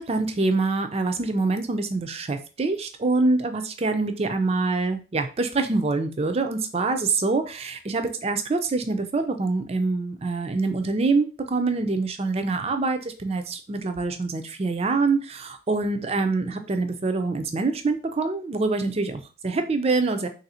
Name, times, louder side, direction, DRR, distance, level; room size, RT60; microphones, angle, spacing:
voice 1, 0.0-20.3, right 3 dB, 30° right, 7 dB, 0.4 m, -25 dB
3.1 x 2.6 x 4.2 m, 0.34 s
head